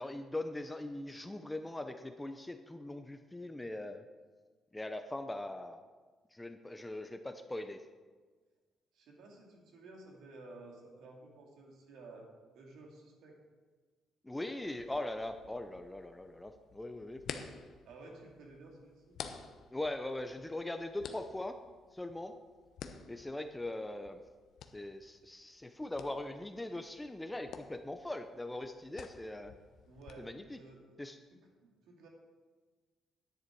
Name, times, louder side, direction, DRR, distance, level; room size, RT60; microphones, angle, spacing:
voice 1, 0.0-4.0 4.7-5.9 6.3-7.8 14.2-17.2 19.7-21.6 21.9-22.3 23.1-24.2 24.7-29.5 30.2-30.6 31.0-31.2, left 1 dB, 10° left, 8 dB, 0.6 m, -41 dB
voice 2, 8.9-12.3 12.5-13.4 17.9-19.2 29.9-30.9 31.3-32.1, right 2 dB, 80° right, 0 dB, 2.4 m, -54 dB
sound 1, 14.6-30.1, left 7 dB, 75° left, 0.8 m, -52 dB
10.5 x 9.8 x 4.6 m, 1.4 s
cardioid pair, 90°, 0 cm